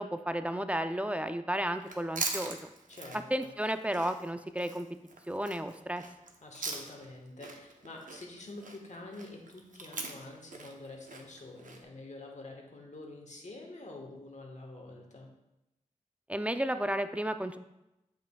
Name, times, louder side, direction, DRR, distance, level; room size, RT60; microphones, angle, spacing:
voice 1, 0.0-2.7 3.3-4.9 5.3-6.0 16.3-17.6, right 1 dB, 10° right, 9 dB, 0.4 m, -33 dB
Chewing mastication, 1.8-7.1 7.4-11.8, right 3 dB, 65° right, 0.8 m, -41 dB
voice 2, 2.9-3.5 6.4-15.3, left 2 dB, 55° left, 0 dB, 1.3 m, -47 dB
7.5 x 5.6 x 2.3 m, 0.92 s
cardioid pair, 50°, 14 cm